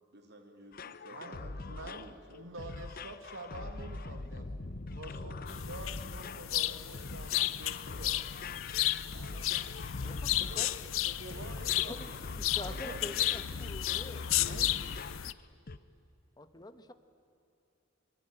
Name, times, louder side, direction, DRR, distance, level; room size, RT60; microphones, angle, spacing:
voice 1, 0.1-2.6 10.0-12.2 12.6-13.6, right 1 dB, 55° right, 5 dB, 3.1 m, -51 dB
sound 1, 0.7-15.3 15.7-15.8, left 3 dB, 45° left, 0.8 m, -43 dB
voice 2, 1.1-4.6 4.9-8.3 9.1-9.6 14.3-14.8, right 2 dB, 70° right, 6 dB, 2.1 m, -48 dB
sound 2, 5.5-15.3, left 13 dB, 80° left, 0.7 m, -33 dB
voice 3, 10.0-10.7 11.9-12.1 12.4-14.7 16.4-16.9, left 1 dB, 20° left, 9 dB, 1.2 m, -46 dB
26.5 x 22.5 x 9.0 m, 2.8 s
head